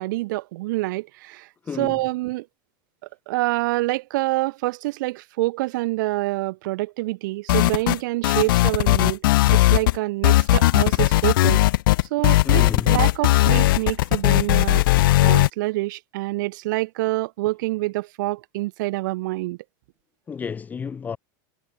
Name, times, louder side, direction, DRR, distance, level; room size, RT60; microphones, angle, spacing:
voice 1, 0.0-1.5 1.8-2.5 3.3-9.2 9.5-11.6 12.1-19.6, right 20 dB, 65° right, 3.7 m, -26 dB
voice 2, 1.6-2.0 12.4-13.0 20.3-21.2, left 6 dB, 15° left, 1.0 m, -31 dB
sound 1, 7.5-10.0 10.2-15.5, left 17 dB, 80° left, 0.5 m, -18 dB
supercardioid pair, 160°, 11 cm